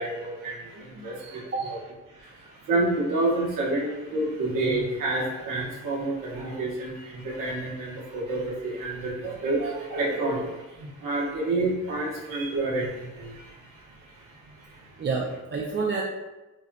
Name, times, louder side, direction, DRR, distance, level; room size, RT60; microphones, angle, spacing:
voice 1, 0.0-1.8 2.7-10.5 11.0-13.4, right 2 dB, 90° right, -3 dB, 1.0 m, -28 dB
voice 2, 1.2-1.7 15.0-16.0, right 4 dB, 35° right, -3 dB, 0.4 m, -29 dB
5.0 x 2.7 x 2.2 m, 1.1 s
cardioid pair, 120°, 31 cm